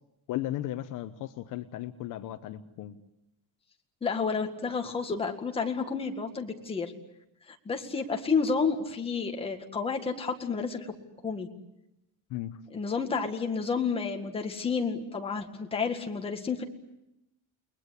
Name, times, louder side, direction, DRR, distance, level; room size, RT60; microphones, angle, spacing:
voice 1, 0.3-3.0 12.3-12.6, left 14 dB, 50° left, 9 dB, 1.1 m, -35 dB
voice 2, 4.0-6.9 7.5-10.9 11.2-11.5 12.7-16.6, left 5 dB, 15° left, 3 dB, 1.9 m, -30 dB
29.5 x 21.5 x 8.3 m, 0.87 s
cardioid pair, 175°, 40 cm